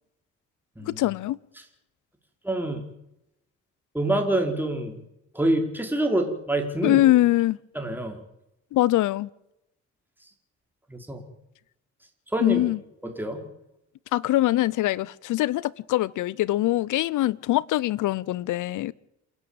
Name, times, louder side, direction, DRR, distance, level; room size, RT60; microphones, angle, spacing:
voice 1, 0.8-1.4 6.8-7.6 8.7-9.3 12.4-12.8 14.1-18.9, left 15 dB, 80° left, 0.8 m, -23 dB
voice 2, 2.4-2.8 3.9-5.0 5.3-7.0 7.7-8.2 10.9-11.2 12.3-12.6 13.0-13.5, right 1 dB, 5° right, 4.9 m, -26 dB
28.0 x 11.5 x 8.9 m
cardioid pair, 90°, 30 cm